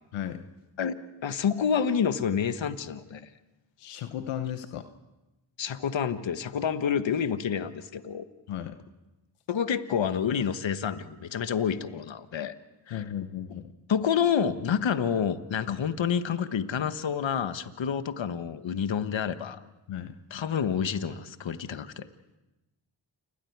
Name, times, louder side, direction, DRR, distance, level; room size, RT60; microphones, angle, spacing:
voice 1, 1.2-3.2 5.6-8.3 9.5-12.6 12.9-13.0 13.9-19.6 20.3-22.1, left 7 dB, 65° left, 11 dB, 1.4 m, -28 dB
voice 2, 3.8-4.8 8.5-8.8 12.9-13.7 15.7-15.8 19.9-20.1, left 10 dB, 90° left, 9 dB, 1.0 m, -35 dB
28.5 x 21.5 x 4.7 m, 1.0 s
supercardioid pair, 40°, 49 cm